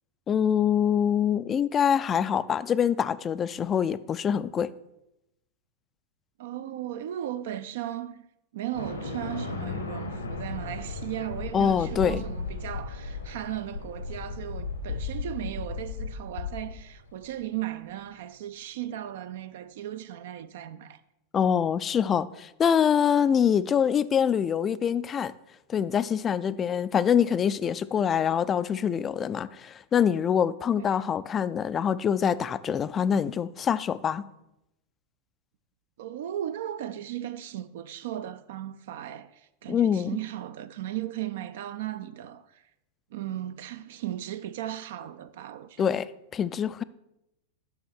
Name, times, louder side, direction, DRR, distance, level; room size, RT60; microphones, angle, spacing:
voice 1, 0.3-4.7 11.5-12.2 21.3-25.3 25.7-34.3 39.7-40.1 45.8-46.8, left 8 dB, 25° left, 0.3 m, -25 dB
voice 2, 6.4-8.2 8.5-21.0 30.8-31.0 36.0-42.6 43.1-45.9, right 12 dB, 55° right, 0.3 m, -36 dB
sound 1, 8.7-17.3, left 4 dB, 75° left, 1.1 m, -35 dB
6.7 x 6.2 x 6.3 m
figure-of-eight pair, 90°, 0 cm